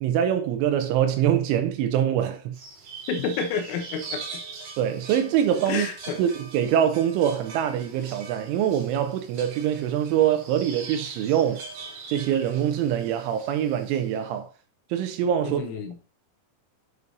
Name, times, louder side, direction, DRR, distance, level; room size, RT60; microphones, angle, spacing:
voice 1, 0.0-2.6 4.8-5.9 6.2-11.6 12.1-14.5 14.9-15.6, right 10 dB, 80° right, 2.9 m, -24 dB
sound 1, 2.5-14.2, right 4 dB, 55° right, 3.2 m, -42 dB
voice 2, 3.1-4.2 5.7-6.2 15.4-16.0, left 5 dB, 85° left, 3.8 m, -29 dB
9.5 x 6.6 x 2.6 m
omnidirectional pair, 6.0 m